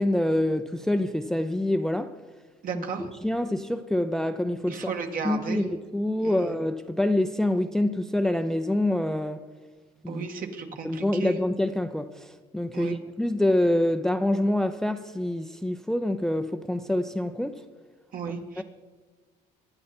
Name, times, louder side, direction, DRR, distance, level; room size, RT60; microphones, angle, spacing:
voice 1, 0.0-2.1 2.7-4.9 5.2-9.4 10.0-10.3 10.8-12.3 12.5-17.6 18.6-18.7, left 1 dB, 5° left, 0.5 m, -26 dB
voice 2, 2.6-3.1 4.7-5.6 6.2-6.5 10.1-11.4 12.7-13.0 18.1-18.6, right 5 dB, 55° right, 2.1 m, -34 dB
24.0 x 10.5 x 4.4 m
cardioid pair, 110°, 17 cm